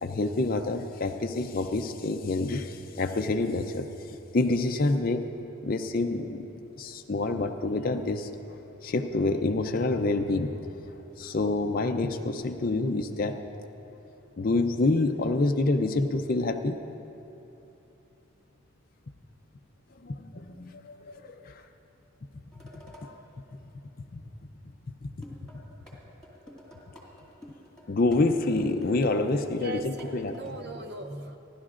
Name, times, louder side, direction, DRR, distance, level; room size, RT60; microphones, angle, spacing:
voice 1, 0.0-3.9 4.3-5.3 5.6-6.5 6.8-8.3 8.8-10.6 11.2-13.4 14.4-16.8 20.0-21.6 23.0-23.1 24.1-24.2 25.0-25.1 27.9-30.3, left 2 dB, 45° left, 5 dB, 0.5 m, -27 dB
sound 1, 22.5-23.1 25.2-26.0 26.2-30.5, left 1 dB, 5° left, 2.2 m, -49 dB
voice 2, 29.6-31.4, right 2 dB, 50° right, 6 dB, 0.7 m, -39 dB
30.0 x 11.5 x 2.5 m, 2.9 s
head